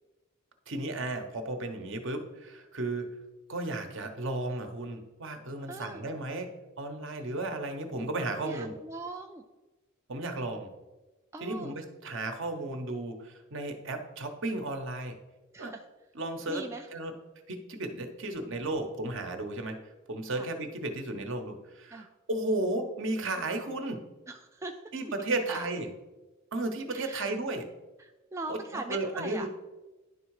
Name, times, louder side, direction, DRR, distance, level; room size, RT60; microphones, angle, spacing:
voice 1, 0.7-3.2 3.5-8.7 10.1-10.7 11.4-15.2 15.6-15.7 16.1-16.6 16.9-17.2 17.5-19.8 20.1-24.0 24.9-25.9 26.5-27.7 28.5-29.5, right 2 dB, 60° right, 6 dB, 0.9 m, -34 dB
voice 2, 5.7-6.0 8.4-9.4 11.3-11.8 15.5-15.8 16.5-16.9 20.4-20.5 21.9-22.1 24.3-25.1 25.5-25.7 26.9-27.3 28.0-29.5, right 2 dB, 15° right, 4 dB, 0.3 m, -40 dB
10.5 x 3.6 x 4.8 m, 1.1 s
head